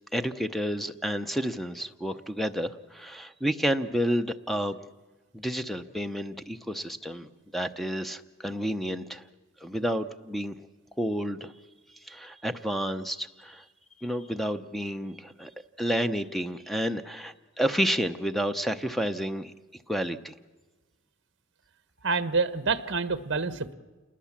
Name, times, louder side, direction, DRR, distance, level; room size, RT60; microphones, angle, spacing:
voice 1, 0.1-4.8 5.3-9.3 9.6-10.6 11.0-11.5 12.0-13.6 14.0-15.5 15.8-19.5 19.9-20.4, equal, ahead, 9 dB, 0.7 m, -30 dB
voice 2, 22.0-23.7, right 4 dB, 55° right, 12 dB, 1.2 m, -27 dB
28.0 x 20.5 x 7.3 m, 1.3 s
head